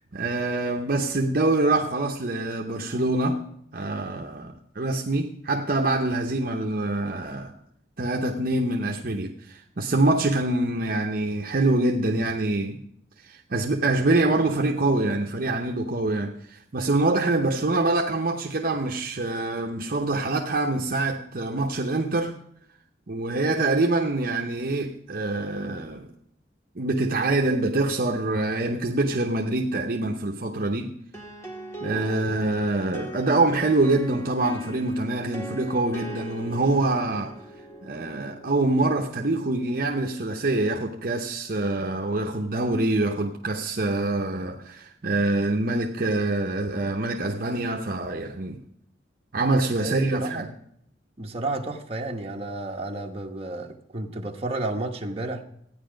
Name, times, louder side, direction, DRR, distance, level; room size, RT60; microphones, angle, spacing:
voice 1, 0.0-7.5 8.0-12.8 13.2-22.3 23.1-26.1 26.8-31.0 31.8-37.3 37.8-48.6 49.3-50.5, right 2 dB, 50° right, 0.8 m, -25 dB
sound 1, 31.1-40.7, right 1 dB, 15° left, 1.7 m, -41 dB
voice 2, 49.8-50.5 51.2-55.4, right 2 dB, 30° right, 1.1 m, -32 dB
14.0 x 9.5 x 5.1 m
head